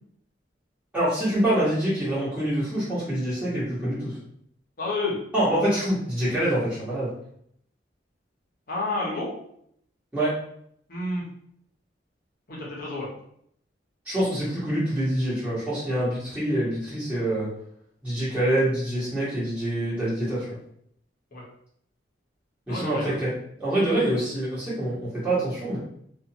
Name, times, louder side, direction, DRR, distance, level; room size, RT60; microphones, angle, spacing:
voice 1, 0.9-4.2 5.3-7.1 10.1-10.3 14.0-17.5 18.0-20.6 22.7-23.3 23.6-25.8, right 1 dB, 10° right, -11 dB, 1.2 m, -25 dB
voice 2, 4.8-5.2 8.7-9.3 10.9-11.2 12.5-13.1 21.3-21.4 22.7-23.2, left 2 dB, 50° left, -4 dB, 0.9 m, -30 dB
2.5 x 2.5 x 2.8 m, 0.70 s
head